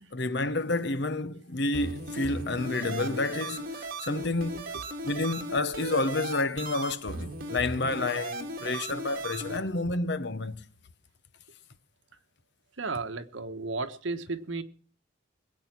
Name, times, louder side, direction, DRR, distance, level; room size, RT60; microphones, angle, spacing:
voice 1, 0.1-4.7 5.0-10.6, left 2 dB, 60° left, 0.9 m, -30 dB
sound 1, 1.7-9.6, right 2 dB, 45° right, 2.5 m, -37 dB
voice 2, 12.8-14.6, right 3 dB, 75° right, 1.2 m, -34 dB
21.0 x 8.7 x 5.9 m
head